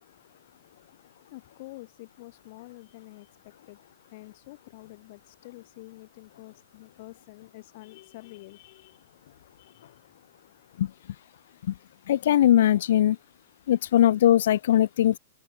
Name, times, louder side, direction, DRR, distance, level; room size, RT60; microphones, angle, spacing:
voice 1, 1.3-3.8 4.1-9.2 9.6-10.1, left 21 dB, 45° left, 6.1 m, -48 dB
voice 2, 12.1-13.2 13.7-15.2, left 12 dB, 65° left, 0.8 m, -20 dB
supercardioid pair, 160°, 0 cm